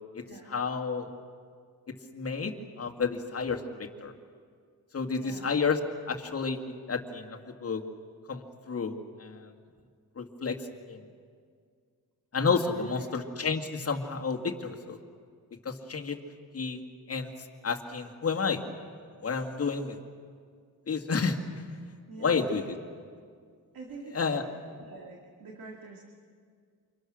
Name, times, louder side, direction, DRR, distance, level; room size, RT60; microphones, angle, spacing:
voice 1, 0.5-1.1 1.9-4.1 4.9-5.8 6.1-7.8 8.3-9.5 10.2-10.6 10.9-11.0 12.3-15.0 15.6-16.2 16.5-16.8 17.1-17.3 17.6-18.6 19.2-20.0 20.9-21.4 22.2-22.6 24.1-24.4, left 5 dB, 40° left, 4 dB, 2.1 m, -30 dB
voice 2, 5.1-5.5 12.7-13.1 22.1-22.6 23.7-24.5 24.8-26.0, right 3 dB, 65° right, 0 dB, 2.7 m, -46 dB
28.5 x 26.5 x 6.4 m, 2.1 s
wide cardioid pair, 140°, 38 cm